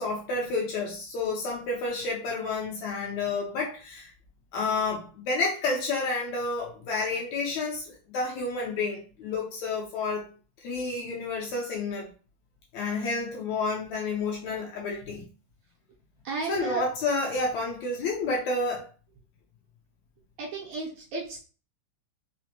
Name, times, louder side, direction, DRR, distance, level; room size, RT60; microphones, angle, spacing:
voice 1, 0.0-4.1 4.5-10.2 10.6-12.1 12.7-15.2 16.4-18.9, left 3 dB, 75° left, -3 dB, 1.8 m, -30 dB
voice 2, 16.2-16.8 20.4-21.4, right 4 dB, 75° right, -3 dB, 1.7 m, -33 dB
5.0 x 2.0 x 2.8 m, 0.37 s
omnidirectional pair, 3.7 m